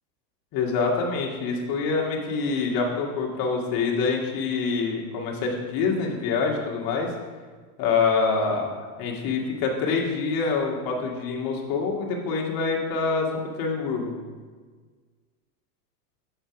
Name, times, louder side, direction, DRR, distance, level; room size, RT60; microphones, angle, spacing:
voice 1, 0.5-7.1 7.8-14.1, left 4 dB, 40° left, -1 dB, 1.7 m, -26 dB
7.0 x 4.5 x 5.8 m, 1.5 s
hypercardioid pair, 110°, 49 cm